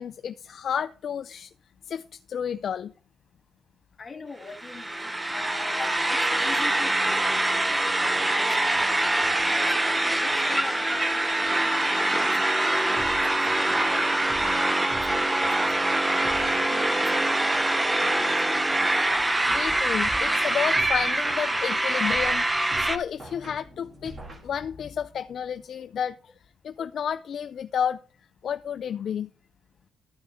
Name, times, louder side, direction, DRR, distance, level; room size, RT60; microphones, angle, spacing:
voice 1, 0.0-1.5 1.9-2.9 19.5-22.4 22.8-26.1 26.6-28.0 28.4-29.3, left 8 dB, 60° left, 0.3 m, -31 dB
voice 2, 4.0-9.7 10.2-14.8 15.1-15.7 16.1-18.6, left 4 dB, 35° left, 1.7 m, -44 dB
sound 1, 4.5-23.0, right 1 dB, 15° right, 0.7 m, -24 dB
sound 2, 13.0-17.2 20.8-25.0, right 2 dB, 40° right, 1.9 m, -44 dB
12.0 x 6.2 x 3.4 m
cardioid pair, 90°, 0 cm